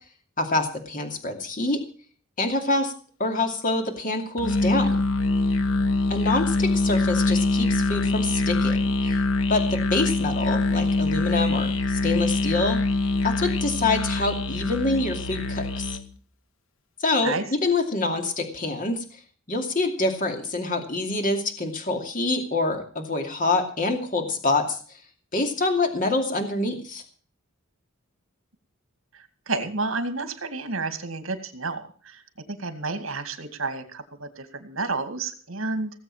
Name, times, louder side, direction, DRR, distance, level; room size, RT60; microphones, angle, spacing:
voice 1, 0.4-1.8 2.4-2.9 3.2-5.0 6.1-9.2 9.5-12.8 13.2-16.0 17.0-19.0 19.5-24.8 25.3-27.0, left 2 dB, 40° left, 4 dB, 2.5 m, -26 dB
Musical instrument, 4.4-16.1, left 2 dB, 75° left, 1.4 m, -24 dB
voice 2, 29.5-32.2 32.5-35.9, right 3 dB, 75° right, 9 dB, 2.2 m, -30 dB
18.0 x 7.8 x 7.4 m, 0.42 s
head